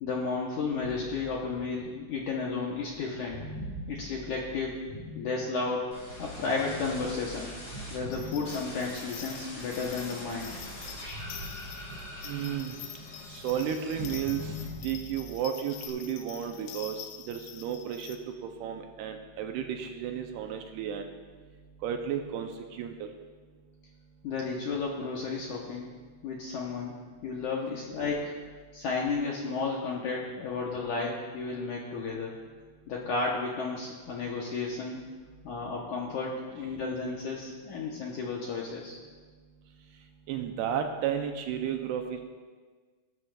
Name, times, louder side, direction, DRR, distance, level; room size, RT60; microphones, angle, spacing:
voice 1, 0.0-3.5 3.9-4.9 5.2-5.9 6.2-7.5 7.9-10.5 24.2-25.9 26.2-26.9 27.2-28.3 28.7-32.3 32.9-35.0 35.4-39.0, left 4 dB, 70° left, -3 dB, 1.9 m, -33 dB
sound 1, 0.8-5.9 6.5-9.1 9.6-12.4 12.7-15.4, left 1 dB, 65° right, 3.8 m, -44 dB
sound 2, 5.9-8.0 8.4-15.0 15.3-15.9, left 1 dB, 35° left, 4.5 m, -44 dB
sound 3, 8.1-18.2, left 9 dB, 85° left, 3.0 m, -46 dB
voice 2, 12.3-12.7 13.3-14.6 14.8-17.0 17.3-21.1 21.8-23.1 40.3-42.3, right 8 dB, 80° right, 5 dB, 2.6 m, -33 dB
18.5 x 12.5 x 2.5 m, 1.5 s
omnidirectional pair, 4.9 m